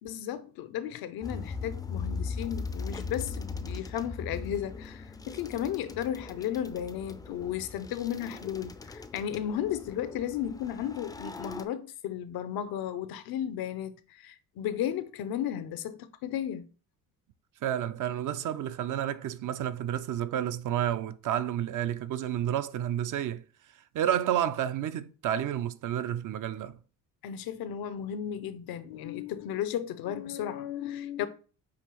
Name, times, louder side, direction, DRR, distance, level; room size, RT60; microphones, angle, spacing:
voice 1, 0.0-16.7 27.2-31.3, left 10 dB, 70° left, 0.6 m, -34 dB
sound 1, 1.2-11.7, left 4 dB, 10° left, 0.4 m, -39 dB
voice 2, 17.6-23.4 23.9-26.8, right 10 dB, 55° right, 0.5 m, -30 dB
6.4 x 2.7 x 3.0 m
supercardioid pair, 75°, 38 cm